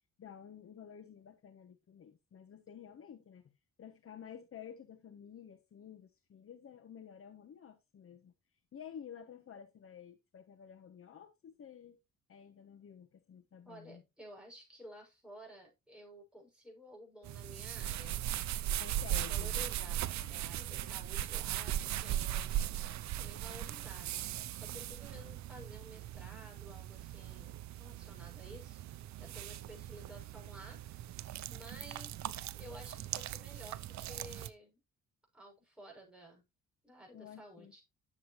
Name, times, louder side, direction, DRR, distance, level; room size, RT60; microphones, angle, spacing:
voice 1, 0.2-3.4 3.8-8.3 8.7-12.0 12.3-14.0 18.8-19.5 37.1-37.7, left 8 dB, 45° left, 1.1 m, -52 dB
voice 2, 13.6-18.2 18.6-22.7 23.2-24.3 24.6-34.8 35.3-36.4 36.8-37.8, equal, 5° right, 6.7 m, -54 dB
sound 1, 17.2-34.5, right 12 dB, 65° right, 0.6 m, -39 dB
9.7 x 7.3 x 3.1 m
cardioid pair, 90°, 30 cm